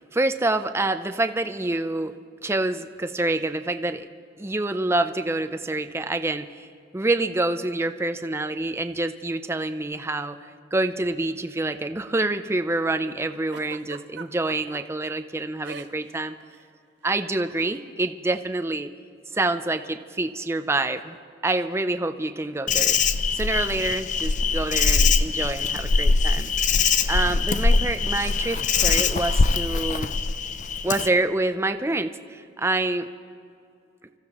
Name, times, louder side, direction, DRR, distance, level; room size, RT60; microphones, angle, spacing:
voice 1, 0.0-2.1 2.4-4.0 4.4-6.7 6.9-10.4 10.7-16.3 17.0-18.9 19.3-21.2 21.4-23.0 23.3-26.5 27.1-30.1 30.8-33.1, right 2 dB, 15° right, 9 dB, 0.5 m, -27 dB
Giggle, 13.5-14.8 15.6-16.2 16.4-16.6 17.6-17.8, right 5 dB, 65° right, 0.6 m, -41 dB
Insect, 22.7-31.1, left 4 dB, 40° left, 0.5 m, -22 dB
25.5 x 15.0 x 3.0 m, 2.5 s
head